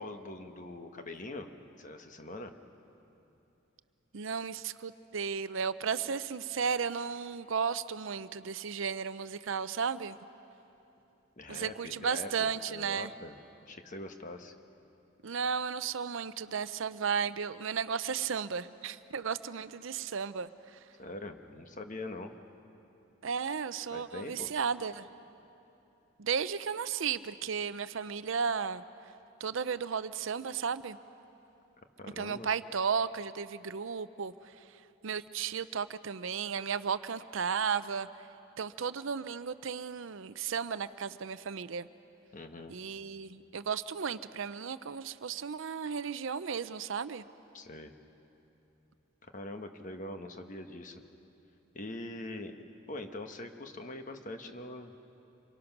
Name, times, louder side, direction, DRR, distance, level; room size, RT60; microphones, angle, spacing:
voice 1, 0.0-1.5 1.8-2.6 11.4-13.4 13.7-14.5 21.0-22.4 23.9-24.5 32.0-32.5 42.3-42.7 47.5-47.9 49.2-51.0 51.7-52.6 52.9-54.9, left 2 dB, 35° left, 6 dB, 1.2 m, -43 dB
voice 2, 4.1-10.2 11.5-13.1 15.2-20.8 23.2-25.1 26.2-28.8 29.4-31.0 32.2-34.3 35.0-38.1 38.6-41.9 42.7-47.2, right 6 dB, 65° right, 14 dB, 0.6 m, -34 dB
26.5 x 23.5 x 6.0 m, 2.9 s
head